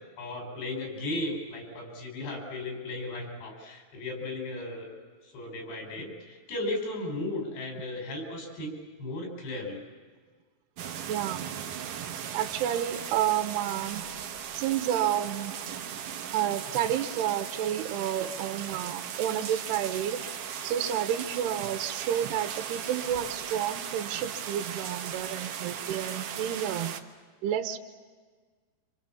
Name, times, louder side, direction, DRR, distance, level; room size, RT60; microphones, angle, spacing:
voice 1, 0.2-4.9 5.2-9.8, left 2 dB, 80° left, 2 dB, 6.8 m, -35 dB
sound 1, 10.8-27.0, right 8 dB, 65° right, 2.3 m, -37 dB
voice 2, 11.1-11.5 12.0-14.1 14.5-15.6 16.3-20.2 20.6-27.0 27.4-27.8, right 10 dB, 80° right, 7 dB, 3.1 m, -30 dB
27.5 x 26.0 x 7.1 m, 1.5 s
omnidirectional pair, 4.8 m